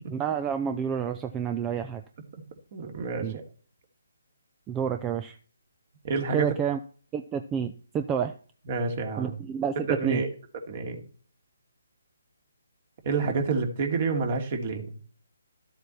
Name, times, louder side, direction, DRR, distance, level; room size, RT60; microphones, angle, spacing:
voice 1, 0.1-2.0 3.2-3.3 4.7-5.4 6.3-6.8 7.1-8.3 9.2-10.2, right 7 dB, 15° right, 7 dB, 0.6 m, -29 dB
voice 2, 2.7-3.4 6.0-6.5 8.7-9.4 9.9-10.3 10.7-11.0 13.0-15.0, right 4 dB, 40° right, 4 dB, 2.8 m, -28 dB
13.0 x 8.0 x 4.3 m, 0.41 s
figure-of-eight pair, 150°, 0 cm